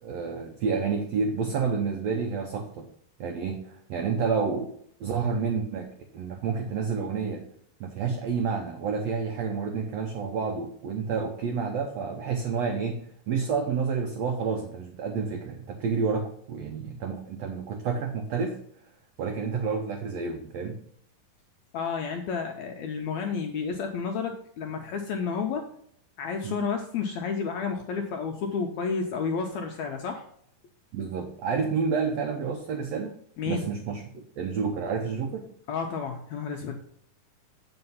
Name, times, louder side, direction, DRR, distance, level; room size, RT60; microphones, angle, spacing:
voice 1, 0.0-2.9 3.2-4.7 5.0-5.9 6.1-7.4 7.8-18.6 19.2-20.8 26.4-26.6 30.9-33.1 33.5-35.5, right 5 dB, 85° right, 3 dB, 1.4 m, -29 dB
voice 2, 21.7-25.7 26.2-30.2 33.4-33.6 35.7-36.8, left 5 dB, 85° left, 3 dB, 1.5 m, -31 dB
7.8 x 5.1 x 5.5 m, 0.66 s
omnidirectional pair, 4.0 m